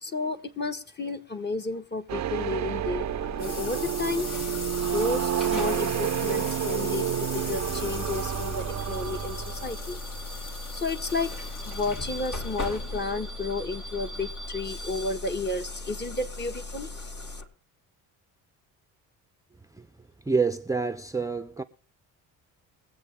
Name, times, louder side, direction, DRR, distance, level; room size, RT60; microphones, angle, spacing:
voice 1, 0.0-3.1 3.4-4.3 4.8-10.0 10.7-11.3 11.6-17.4, left 3 dB, 25° left, 1.6 m, -32 dB
sound 1, 2.1-10.0, right 11 dB, 45° right, 0.6 m, -30 dB
sound 2, 2.7-14.0, left 3 dB, 70° left, 3.7 m, -41 dB
Bus / Alarm, 2.8-17.4, left 2 dB, 55° left, 4.2 m, -38 dB
voice 2, 20.3-21.6, right 4 dB, 10° right, 0.7 m, -27 dB
23.0 x 7.9 x 3.5 m
cardioid pair, 80°, 38 cm